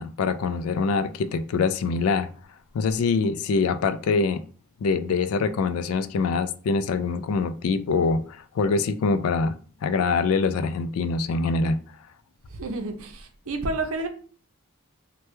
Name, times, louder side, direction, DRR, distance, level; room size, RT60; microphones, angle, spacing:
voice 1, 0.0-2.3 2.7-4.4 4.8-11.8, left 4 dB, 80° left, 0.3 m, -24 dB
voice 2, 12.5-14.1, right 2 dB, 70° right, 0.6 m, -30 dB
2.9 x 2.2 x 3.2 m
head